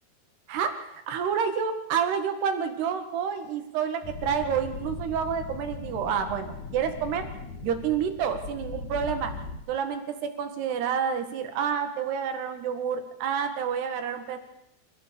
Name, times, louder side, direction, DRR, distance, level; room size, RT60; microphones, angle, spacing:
voice 1, 0.5-7.3 7.6-9.3 9.7-14.4, right 7 dB, 80° right, 7 dB, 4.0 m, -29 dB
sound 1, 4.0-9.6, left 4 dB, 50° left, 3.6 m, -39 dB
28.0 x 14.5 x 7.0 m, 0.82 s
omnidirectional pair, 4.6 m